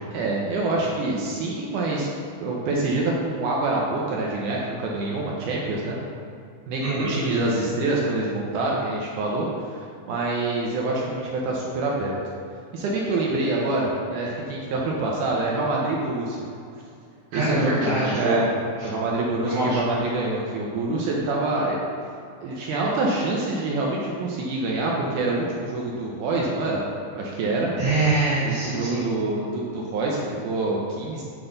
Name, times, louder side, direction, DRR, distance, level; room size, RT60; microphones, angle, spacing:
voice 1, 0.1-2.1 2.4-6.0 6.7-12.2 12.7-16.4 17.3-17.8 18.1-18.5 18.8-21.8 22.4-26.8 27.1-27.7 28.4-31.2, right 2 dB, 75° right, -3 dB, 1.9 m, -26 dB
voice 2, 6.8-7.1 17.3-18.4 18.8-18.9 19.4-19.8 27.8-29.1, right 2 dB, 60° right, -12 dB, 2.9 m, -24 dB
7.9 x 5.6 x 3.9 m, 2.5 s
omnidirectional pair, 4.3 m